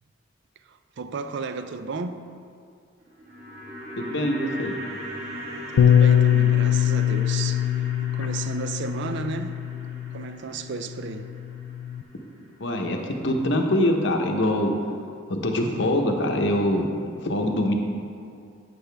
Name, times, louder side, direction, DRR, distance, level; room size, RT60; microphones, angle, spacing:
voice 1, 0.7-2.2 5.7-7.7 8.1-9.6 10.1-11.3, right 4 dB, 60° right, 9 dB, 0.4 m, -33 dB
sound 1, 3.0-13.3 13.5-13.6, equal, 35° right, 1.4 m, -39 dB
voice 2, 4.0-4.7 12.6-13.0 13.2-14.7 15.3-16.9 17.2-17.7, left 1 dB, 65° left, 3 dB, 0.9 m, -23 dB
Bass guitar, 5.8-10.3 11.1-12.0, left 10 dB, 85° left, 0.3 m, -22 dB
9.2 x 7.9 x 3.4 m, 2.3 s
head